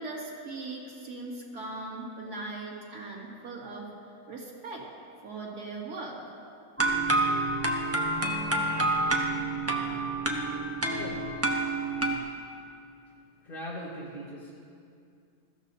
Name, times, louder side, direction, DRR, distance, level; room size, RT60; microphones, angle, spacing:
voice 1, 0.0-3.9 4.3-4.8 5.2-6.2, right 3 dB, 85° right, -4 dB, 2.9 m, -39 dB
sound 1, 6.8-12.2, right 2 dB, 10° right, 0.9 m, -28 dB
voice 2, 10.9-11.4 13.4-14.6, equal, 35° left, -6 dB, 1.9 m, -40 dB
21.0 x 14.5 x 2.8 m, 2.4 s
omnidirectional pair, 1.6 m